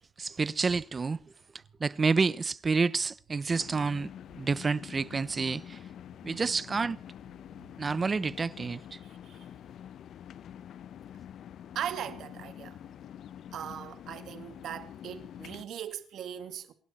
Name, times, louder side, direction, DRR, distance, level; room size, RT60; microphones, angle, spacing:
voice 1, 0.2-1.2 1.8-5.8 6.2-7.0 7.8-9.0, right 4 dB, 35° right, 1.0 m, -29 dB
sound 1, 3.5-15.6, left 10 dB, 70° left, 0.9 m, -46 dB
voice 2, 11.7-12.8 13.5-16.7, right 9 dB, 70° right, 2.1 m, -39 dB
28.0 x 12.0 x 4.4 m
cardioid pair, 90°, 0 cm